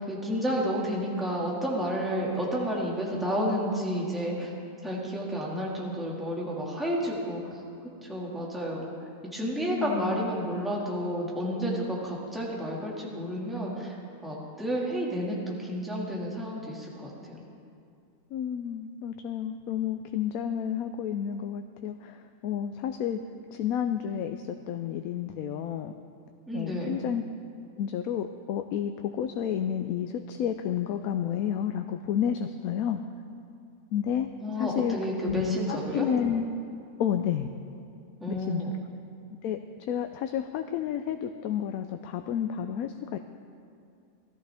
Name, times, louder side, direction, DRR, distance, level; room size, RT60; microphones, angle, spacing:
voice 1, 0.0-4.5 4.8-7.6 8.0-8.8 9.3-13.9 14.2-17.4 26.5-27.0 34.4-36.1 38.2-38.8, equal, ahead, -4 dB, 1.9 m, -31 dB
voice 2, 9.7-10.3 18.3-23.2 23.5-25.9 26.5-27.2 27.8-33.0 33.9-35.0 35.2-36.5 37.0-37.5 38.4-38.7 39.4-39.6 39.9-43.2, left 9 dB, 85° left, 7 dB, 1.0 m, -31 dB
17.5 x 14.0 x 3.5 m, 2.4 s
omnidirectional pair, 1.5 m